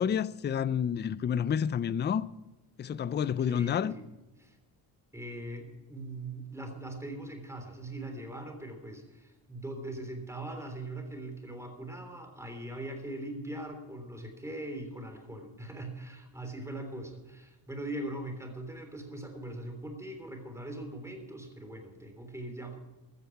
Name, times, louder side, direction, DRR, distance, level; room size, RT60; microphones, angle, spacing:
voice 1, 0.0-2.3 2.8-3.9, left 8 dB, 25° left, 0.4 m, -29 dB
voice 2, 3.2-4.0 4.4-4.6 5.1-22.8, right 1 dB, 5° right, 3.4 m, -41 dB
15.0 x 14.0 x 4.6 m
cardioid pair, 125°, 45 cm